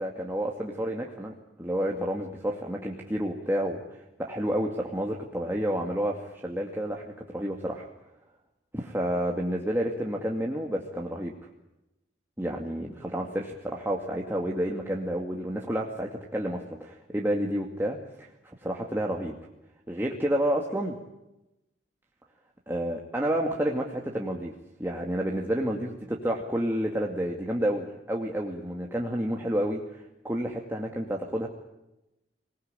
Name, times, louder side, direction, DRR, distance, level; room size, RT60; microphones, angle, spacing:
voice 1, 0.0-3.8 4.2-7.9 8.7-11.3 12.4-18.3 18.6-19.4 19.9-20.9 22.7-24.5 24.8-31.5, equal, 15° right, -1 dB, 2.3 m, -30 dB
26.5 x 19.5 x 9.0 m, 0.92 s
head